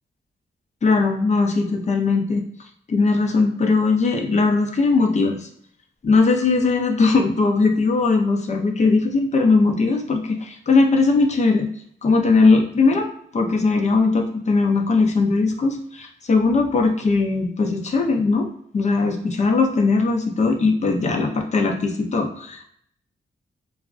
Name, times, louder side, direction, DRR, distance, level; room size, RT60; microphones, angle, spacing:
voice 1, 0.8-2.4 2.9-5.5 6.0-11.7 12.0-18.5 18.7-22.6, left 3 dB, 40° left, 4 dB, 0.5 m, -19 dB
3.4 x 2.0 x 2.5 m, 0.66 s
wide cardioid pair, 145°, 19 cm